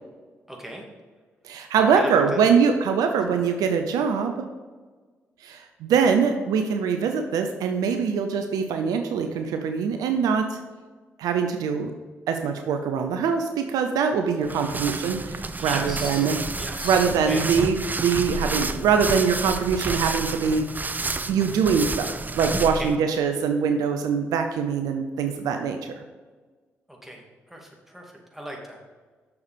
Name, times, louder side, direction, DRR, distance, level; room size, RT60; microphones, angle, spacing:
voice 1, 0.5-0.8 1.8-2.4 3.2-3.3 15.5-16.3 16.6-17.5 22.7-22.9 26.9-28.8, equal, 5° right, -1 dB, 2.6 m, -38 dB
voice 2, 1.4-4.4 5.4-10.6 11.2-11.9 12.3-16.4 16.8-20.7 21.3-25.8, right 6 dB, 75° right, 6 dB, 0.7 m, -23 dB
sound 1, 14.4-23.0, right 3 dB, 30° right, 0.6 m, -30 dB
7.0 x 6.7 x 5.2 m, 1.4 s
hypercardioid pair, 40°, 6 cm